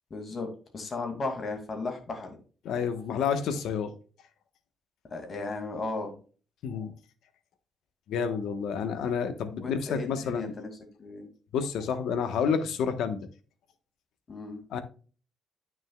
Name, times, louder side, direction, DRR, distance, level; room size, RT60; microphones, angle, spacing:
voice 1, 0.1-2.3 5.1-6.1 9.6-10.7 11.0-11.3 14.3-14.6, left 3 dB, 35° left, 4 dB, 2.3 m, -35 dB
voice 2, 2.6-3.9 6.6-6.9 8.1-10.5 11.5-13.3 14.7-14.8, left 6 dB, 80° left, 9 dB, 1.2 m, -29 dB
9.4 x 6.3 x 2.3 m, 0.37 s
cardioid pair, 125°, 0 cm